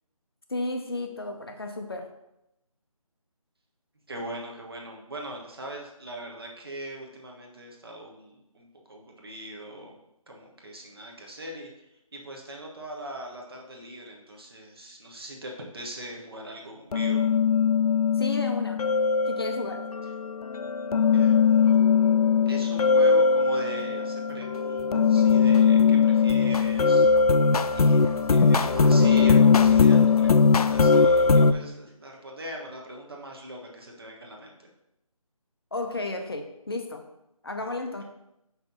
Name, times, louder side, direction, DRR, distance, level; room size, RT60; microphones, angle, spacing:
voice 1, 0.5-2.1 18.1-18.8 19.2-19.8 35.7-37.0 37.4-38.0, left 2 dB, 40° left, 4 dB, 0.6 m, -33 dB
voice 2, 4.1-9.9 10.3-11.7 12.1-17.2 21.1-21.8 22.5-27.1 27.7-34.7, right 1 dB, 40° right, 0 dB, 1.3 m, -40 dB
sound 1, 16.9-31.5, left 5 dB, 90° left, 0.5 m, -20 dB
5.8 x 5.5 x 4.0 m, 0.86 s
figure-of-eight pair, 175°, 19 cm